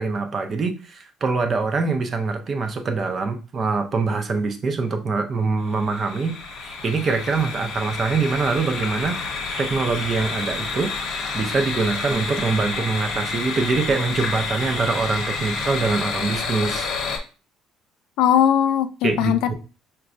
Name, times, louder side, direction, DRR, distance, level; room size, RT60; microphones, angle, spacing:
voice 1, 0.0-9.2 9.6-10.9 11.3-16.9 19.0-19.5, right 4 dB, 30° right, 7 dB, 0.5 m, -24 dB
sound 1, 5.7-17.2, left 4 dB, 60° left, 0.9 m, -29 dB
voice 2, 18.2-19.5, left 10 dB, 75° left, 9 dB, 0.3 m, -19 dB
5.8 x 2.2 x 2.5 m, 0.34 s
cardioid pair, 150°, 0 cm